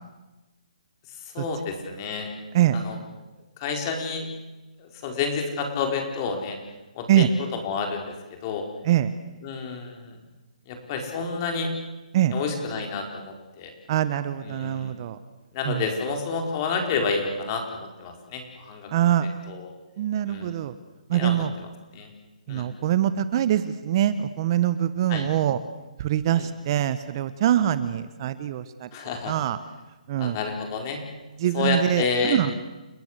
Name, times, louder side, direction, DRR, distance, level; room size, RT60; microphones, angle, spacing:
voice 1, 1.3-2.3 2.7-3.0 3.6-4.3 4.8-6.6 6.9-7.3 7.5-8.1 8.4-8.6 9.4-10.2 10.7-11.7 12.3-13.7 14.4-15.0 15.5-19.1 19.5-19.7 20.2-20.5 21.1-21.7 21.9-22.1 22.5-22.7 25.1-25.3 26.3-26.5 28.9-29.4 30.2-31.0 31.5-32.4, left 5 dB, 30° left, 3 dB, 4.9 m, -29 dB
voice 2, 13.9-15.2 15.6-15.9 18.9-19.3 20.0-20.7 21.1-21.5 22.5-25.6 26.0-28.9 29.3-29.6 30.1-30.4 31.4-32.5, right 11 dB, 35° right, 13 dB, 1.2 m, -23 dB
29.5 x 18.0 x 8.2 m, 1.1 s
hypercardioid pair, 160°, 4 cm